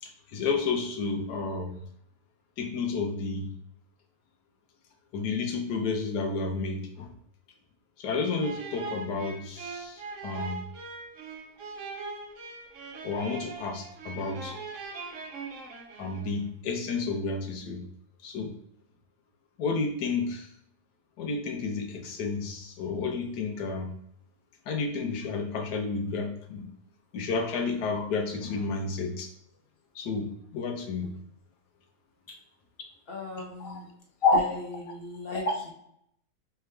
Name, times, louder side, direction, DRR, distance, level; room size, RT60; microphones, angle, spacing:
voice 1, 0.0-1.8 2.6-3.5 5.1-7.1 8.0-10.6 13.0-14.6 16.0-17.9 18.2-18.5 19.6-20.5 21.2-23.9 24.7-26.6 27.1-29.3 29.9-31.1 33.6-33.8, left 4 dB, 80° left, 3 dB, 1.4 m, -31 dB
sound 1, 8.4-16.4, right 4 dB, 60° right, 1.0 m, -41 dB
voice 2, 33.1-33.9 34.2-35.7, left 3 dB, 40° left, -2 dB, 1.1 m, -28 dB
4.6 x 3.4 x 3.3 m, 0.71 s
omnidirectional pair, 1.7 m